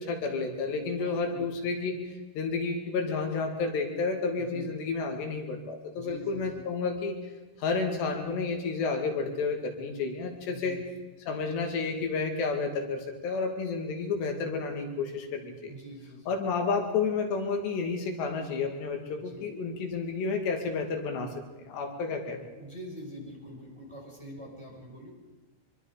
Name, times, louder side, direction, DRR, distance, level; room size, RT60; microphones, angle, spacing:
voice 1, 0.0-2.0 2.4-7.2 7.6-10.8 11.3-15.7 16.3-21.3 21.7-22.4, left 4 dB, 85° left, 3 dB, 4.5 m, -31 dB
voice 2, 0.6-1.7 4.4-4.7 5.9-6.7 10.5-10.8 15.7-16.4 19.2-19.5 22.6-25.1, equal, 5° right, -2 dB, 5.8 m, -45 dB
25.0 x 23.5 x 5.1 m, 1.2 s
omnidirectional pair, 4.8 m